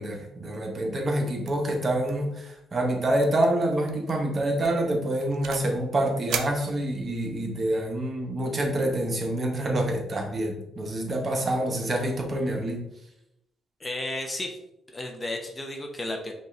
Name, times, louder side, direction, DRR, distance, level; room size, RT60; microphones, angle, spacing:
voice 1, 0.0-12.8, right 1 dB, 35° right, 1 dB, 1.0 m, -27 dB
sound 1, 1.5-1.8 2.0-2.3 2.6-2.7 3.2-3.5 3.9-4.1 4.6-5.8 6.3-7.3, right 7 dB, 75° right, 0.4 m, -36 dB
voice 2, 13.8-14.6 14.9-16.3, left 1 dB, 20° left, 3 dB, 0.7 m, -33 dB
5.3 x 2.4 x 3.2 m, 0.83 s
cardioid pair, 90°, 0 cm